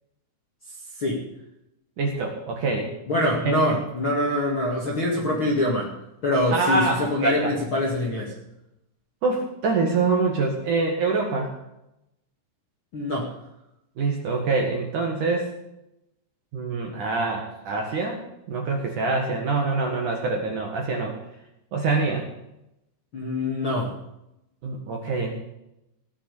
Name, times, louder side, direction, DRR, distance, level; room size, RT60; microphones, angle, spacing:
voice 1, 2.0-2.9 3.4-3.8 6.5-7.0 7.2-7.5 9.2-11.5 14.0-15.5 16.5-18.2 18.5-21.2 21.7-22.2 24.6-25.4, right 3 dB, 55° right, 1 dB, 2.5 m, -25 dB
voice 2, 3.1-5.9 6.2-8.3 12.9-13.3 23.1-23.9, left 1 dB, 40° left, -4 dB, 2.0 m, -24 dB
17.5 x 7.0 x 8.5 m, 0.85 s
omnidirectional pair, 5.6 m